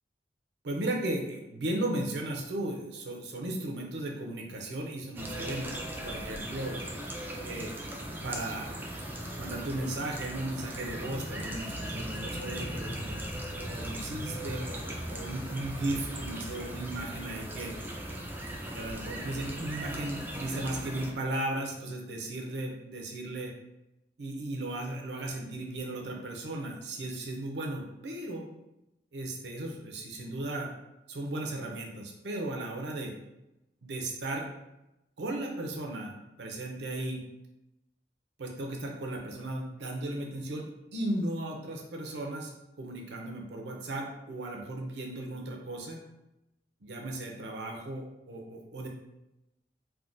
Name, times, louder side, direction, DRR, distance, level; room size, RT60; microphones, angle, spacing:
voice 1, 0.6-5.7 6.0-6.8 7.4-7.7 8.2-8.7 9.4-13.2 13.7-17.7 18.7-23.5 24.2-28.5 29.1-30.7 31.1-33.1 33.8-34.5 35.2-37.2 38.4-42.5 42.8-46.0 46.8-48.9, right 1 dB, 75° right, 0 dB, 0.6 m, -36 dB
sound 1, 5.2-21.1, right 1 dB, 10° right, 0.3 m, -38 dB
3.5 x 2.2 x 2.5 m, 0.92 s
head